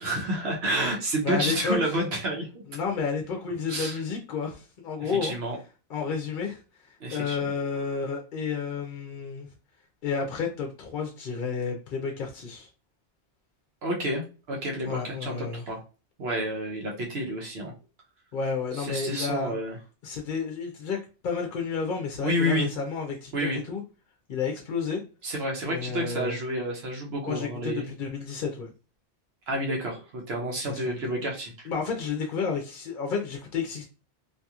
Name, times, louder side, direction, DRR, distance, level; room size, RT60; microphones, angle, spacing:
voice 1, 0.0-2.6 3.7-4.0 5.0-5.6 7.0-7.5 13.8-15.8 16.2-17.7 18.7-19.8 22.2-22.7 23.3-23.6 25.2-27.9 29.5-31.5, right 1 dB, 75° right, -1 dB, 1.0 m, -29 dB
voice 2, 1.2-1.8 2.7-5.3 5.9-6.6 7.1-9.5 10.0-12.7 14.8-15.6 18.3-19.5 20.0-23.3 23.6-23.8 24.3-25.0 25.6-26.4 27.3-28.7 30.7-31.0 31.7-33.9, left 5 dB, 60° left, 2 dB, 0.7 m, -31 dB
2.8 x 2.6 x 2.3 m, 0.34 s
omnidirectional pair, 1.1 m